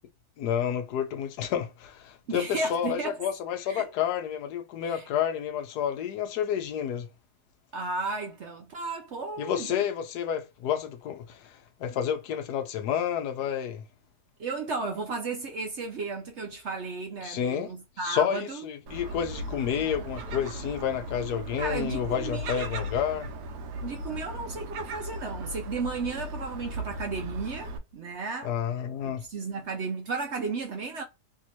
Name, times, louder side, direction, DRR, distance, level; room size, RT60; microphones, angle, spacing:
voice 1, 0.4-7.1 9.4-13.8 17.2-17.7 18.0-23.3 28.4-29.3, left 9 dB, 75° left, 1.2 m, -30 dB
voice 2, 2.3-3.2 3.7-3.9 4.8-5.1 7.7-9.8 14.4-18.6 21.6-22.8 23.8-28.6 29.0-31.0, right 4 dB, 60° right, 0.7 m, -34 dB
Gull seagull, 18.9-27.8, right 1 dB, 80° right, 1.3 m, -37 dB
3.4 x 2.7 x 2.8 m
omnidirectional pair, 1.7 m